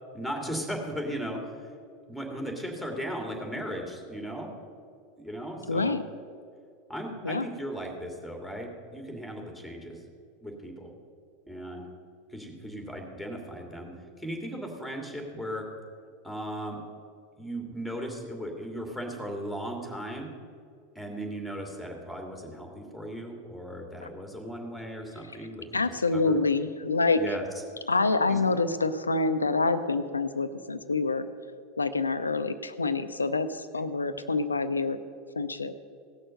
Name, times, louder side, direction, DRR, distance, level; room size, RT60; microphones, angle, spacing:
voice 1, 0.1-1.5 2.1-4.5 5.2-6.0 6.9-10.0 10.4-10.9 11.5-11.9 12.3-15.7 16.2-16.8 17.4-20.3 20.9-26.4 27.1-27.6 28.3-28.4, equal, ahead, 2 dB, 2.6 m, -37 dB
voice 2, 5.7-6.0 7.2-7.5 25.7-27.3 27.9-31.2 31.8-35.0 35.4-35.7, left 3 dB, 90° left, 11 dB, 0.6 m, -26 dB
17.0 x 6.5 x 6.6 m, 2.3 s
figure-of-eight pair, 85°, 0 cm